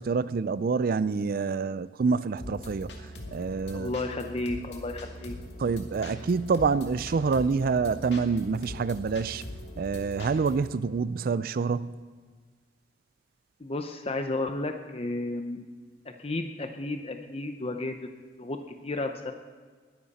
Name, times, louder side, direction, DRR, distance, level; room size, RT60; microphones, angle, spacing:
voice 1, 0.0-2.9 3.3-3.9 5.6-9.4 9.8-12.0, right 5 dB, 55° right, 16 dB, 0.4 m, -27 dB
time break no high note, 2.4-10.7, equal, 75° left, 2.1 m, -42 dB
voice 2, 3.7-5.4 13.6-15.6 16.0-17.9 18.4-18.6 18.8-19.3, left 2 dB, 35° left, 6 dB, 0.7 m, -32 dB
20.5 x 10.5 x 4.2 m, 1.5 s
head